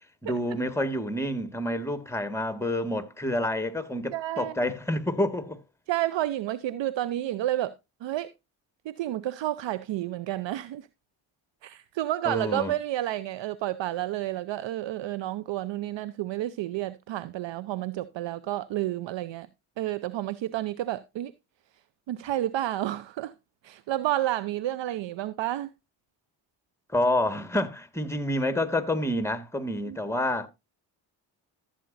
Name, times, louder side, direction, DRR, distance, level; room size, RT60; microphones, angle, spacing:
voice 1, 0.2-5.6 12.3-12.7 26.9-30.5, left 1 dB, 5° left, 1.8 m, -28 dB
voice 2, 4.1-4.5 5.9-7.7 8.0-8.3 8.8-10.9 11.6-19.5 19.8-21.3 22.1-23.3 23.6-25.7 29.9-30.0, right 14 dB, 65° right, 0.7 m, -30 dB
14.5 x 8.4 x 2.6 m
supercardioid pair, 50°, 49 cm